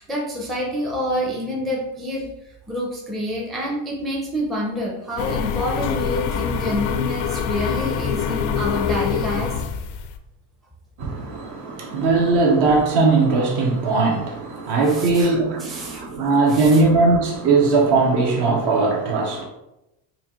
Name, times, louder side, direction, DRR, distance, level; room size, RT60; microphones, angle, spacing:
voice 1, 0.0-2.3 2.7-9.6 14.9-15.3 15.6-16.0 16.5-16.8, equal, ahead, 0.5 m, -27 dB
sound 1, 5.2-10.2, left 7 dB, 85° left, 0.6 m, -25 dB
voice 2, 11.0-19.4, right 3 dB, 55° right, 1.2 m, -19 dB
4.4 x 2.5 x 3.0 m
cardioid pair, 130°, 47 cm